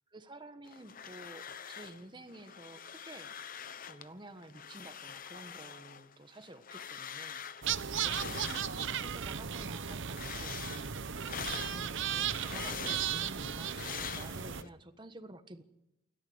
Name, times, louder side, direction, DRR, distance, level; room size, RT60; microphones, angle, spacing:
voice 1, 0.1-3.3 3.9-7.7 8.0-11.2 11.5-15.6, right 1 dB, 20° right, 9 dB, 1.4 m, -51 dB
sound 1, 0.7-2.0 2.3-4.1 4.4-9.2 9.5-14.7, left 8 dB, 40° left, 0.9 m, -45 dB
sound 2, 7.6-14.6, right 8 dB, 60° right, 0.8 m, -36 dB
29.0 x 12.5 x 8.1 m, 0.90 s
head